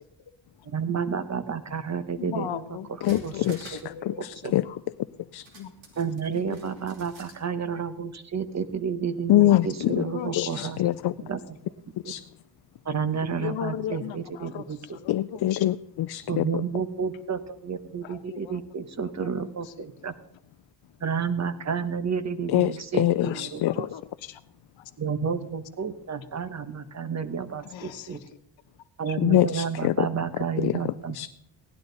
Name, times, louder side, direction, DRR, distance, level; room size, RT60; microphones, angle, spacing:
voice 1, 0.7-2.6 3.2-3.3 4.4-4.5 6.0-10.8 11.2-11.4 12.0-12.1 12.8-14.8 16.3-20.1 21.0-23.9 25.0-28.2 29.0-31.3, right 6 dB, 35° right, 12 dB, 1.1 m, -31 dB
voice 2, 2.2-3.5 3.9-4.8 5.5-5.7 6.3-6.7 9.5-10.7 13.4-15.6 18.0-18.6 19.2-19.5 23.2-23.4 23.6-24.4 24.8-24.9 27.6-28.4 29.1-29.2, left 10 dB, 85° left, 9 dB, 1.1 m, -37 dB
sound 1, 2.8-4.0 4.3-4.4 5.5-7.4 7.8-7.9, right 3 dB, 85° right, 3.1 m, -49 dB
voice 3, 3.0-4.7 5.3-5.5 9.3-10.1 10.3-11.1 12.0-12.2 15.1-16.6 22.5-23.8 29.2-30.1 30.6-31.3, left 14 dB, 60° left, 12 dB, 0.5 m, -24 dB
17.0 x 11.5 x 4.0 m, 0.70 s
cardioid pair, 100°, 45 cm